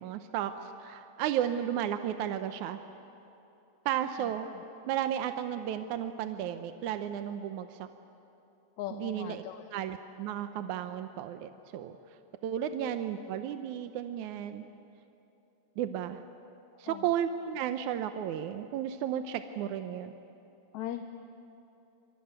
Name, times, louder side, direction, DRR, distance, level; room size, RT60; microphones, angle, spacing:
voice 1, 0.0-2.8 3.9-4.5 4.9-7.9 8.9-9.4 9.7-11.9 12.4-14.6 15.8-16.2 16.8-20.1, right 10 dB, 85° right, 8 dB, 2.3 m, -33 dB
voice 2, 8.8-9.6 16.9-17.1 20.7-21.1, left 11 dB, 75° left, 6 dB, 2.3 m, -39 dB
25.5 x 25.5 x 9.0 m, 2.9 s
omnidirectional pair, 3.4 m